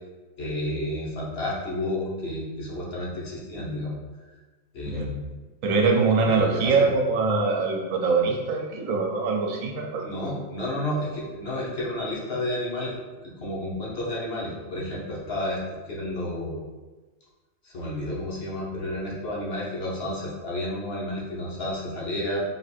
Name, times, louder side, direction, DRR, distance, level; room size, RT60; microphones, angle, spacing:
voice 1, 0.4-4.0 4.7-5.3 6.2-6.9 10.0-12.9 13.2-16.6 17.6-22.4, left 1 dB, 50° left, -5 dB, 1.1 m, -31 dB
voice 2, 5.6-10.0, right 4 dB, 80° right, 1 dB, 1.1 m, -23 dB
3.6 x 2.5 x 4.2 m, 1.3 s
omnidirectional pair, 1.4 m